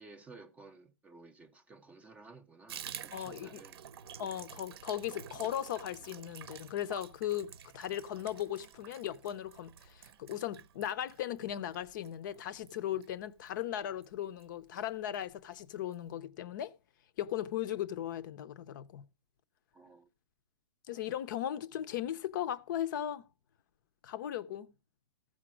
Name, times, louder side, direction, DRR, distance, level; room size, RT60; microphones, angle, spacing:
voice 1, 0.0-3.8 19.7-20.1, right 3 dB, 10° right, 0.5 m, -55 dB
Water tap faucet / Bathtub (filling or washing), 2.7-13.6 14.0-14.1 14.4-14.5 14.8-15.3 15.5-15.6 15.9-16.0, right 9 dB, 50° right, 0.8 m, -50 dB
voice 2, 3.1-3.6 4.2-16.7 17.2-19.0 20.9-23.3 24.0-24.7, left 11 dB, 40° left, 0.6 m, -37 dB
15.0 x 5.1 x 6.1 m
hypercardioid pair, 160°, 17 cm